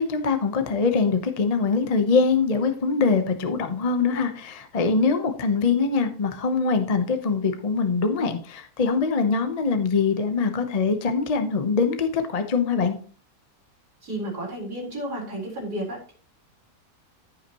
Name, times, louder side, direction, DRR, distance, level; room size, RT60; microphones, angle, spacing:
voice 1, 0.0-13.0, left 4 dB, 30° left, 7 dB, 0.7 m, -23 dB
voice 2, 14.0-16.1, right 1 dB, 75° right, -3 dB, 4.6 m, -32 dB
14.5 x 5.8 x 3.0 m, 0.41 s
omnidirectional pair, 1.7 m